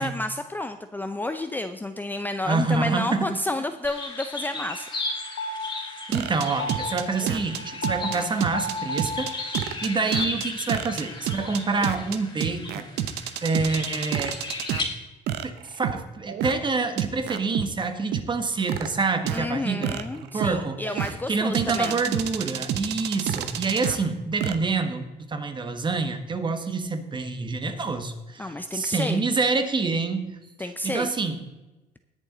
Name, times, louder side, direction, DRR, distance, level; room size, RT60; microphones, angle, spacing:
voice 1, 0.0-4.9 19.3-22.0 28.4-29.2 30.6-31.1, left 2 dB, 10° left, 8 dB, 0.5 m, -30 dB
voice 2, 2.4-3.3 6.1-12.9 13.4-14.4 15.4-31.4, right 4 dB, 30° right, 8 dB, 1.4 m, -27 dB
sound 1, 3.8-14.8, left 3 dB, 25° left, 2.8 m, -36 dB
sound 2, 4.7-9.8, left 1 dB, 70° left, 1.5 m, -35 dB
sound 3, 6.1-14.8 15.3-16.5 17.0-17.6 18.1-18.9 19.3-19.4 19.8-21.1 21.5-24.0 24.4-24.6, right 11 dB, 80° right, 0.9 m, -29 dB
19.5 x 7.2 x 3.9 m, 1.1 s
cardioid pair, 110°, 17 cm